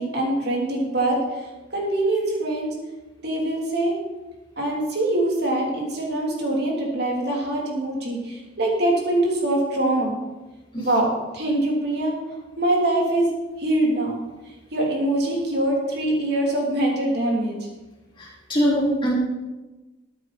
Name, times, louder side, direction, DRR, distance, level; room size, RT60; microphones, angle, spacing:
voice 1, 0.0-1.5 1.7-2.7 3.2-3.9 4.6-10.2 10.8-11.1 11.3-12.2 12.6-13.3 13.6-14.2 14.7-17.6, right 1 dB, 60° right, -2 dB, 3.2 m, -23 dB
voice 2, 18.2-19.1, equal, 25° left, -5 dB, 3.7 m, -22 dB
13.5 x 9.0 x 4.2 m, 1.1 s
head